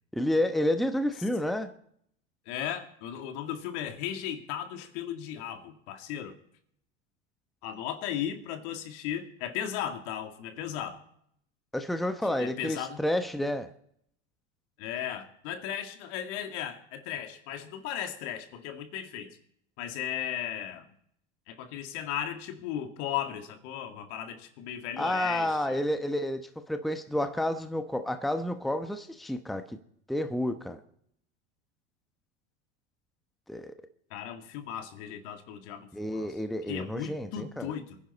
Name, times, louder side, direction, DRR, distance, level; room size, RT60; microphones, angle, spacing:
voice 1, 0.1-1.7 11.7-13.7 25.0-29.8 30.1-30.8 33.5-33.7 35.9-37.7, left 1 dB, ahead, 1.1 m, -30 dB
voice 2, 2.5-6.3 7.6-11.0 12.3-13.0 14.8-19.4 19.8-20.8 21.5-25.8 34.1-36.3 36.7-38.0, left 10 dB, 70° left, 2.2 m, -36 dB
24.0 x 10.5 x 4.2 m
hypercardioid pair, 100°, 37 cm